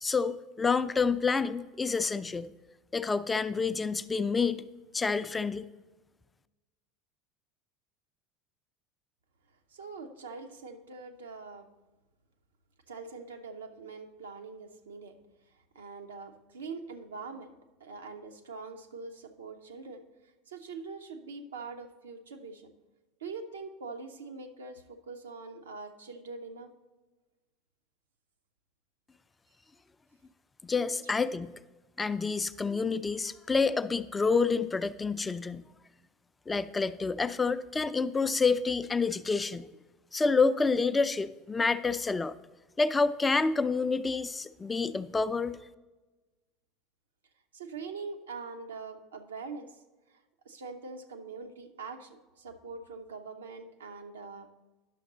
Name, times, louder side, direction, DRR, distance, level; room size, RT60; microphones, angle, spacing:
voice 1, 0.0-2.5 2.9-4.6 4.9-5.6 30.6-31.5 32.0-35.6 36.5-39.7 40.1-42.3 42.8-45.6, left 4 dB, 15° left, 13 dB, 0.4 m, -28 dB
voice 2, 9.7-11.7 12.9-15.2 15.7-20.0 20.5-22.7 23.2-26.7 47.5-49.8 50.1-54.5, right 4 dB, 75° right, 5 dB, 0.7 m, -43 dB
10.0 x 6.5 x 3.9 m, 1.2 s
figure-of-eight pair, 70°, 0 cm